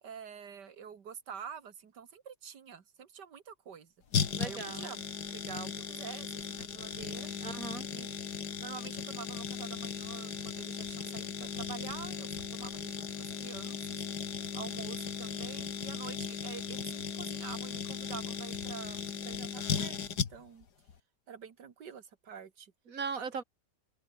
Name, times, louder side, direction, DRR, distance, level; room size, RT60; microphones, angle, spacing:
voice 1, 0.0-3.9 4.4-5.0 5.3-7.3 7.9-14.0 14.5-20.7 21.3-22.7, right 7 dB, 90° right, 2.4 m, -47 dB
sound 1, 4.1-20.6 20.9-21.0, left 7 dB, 75° left, 2.2 m, -37 dB
voice 2, 4.3-4.9 7.4-7.9 22.9-23.4, right 5 dB, 55° right, 2.2 m, -38 dB
open air
omnidirectional pair, 1.8 m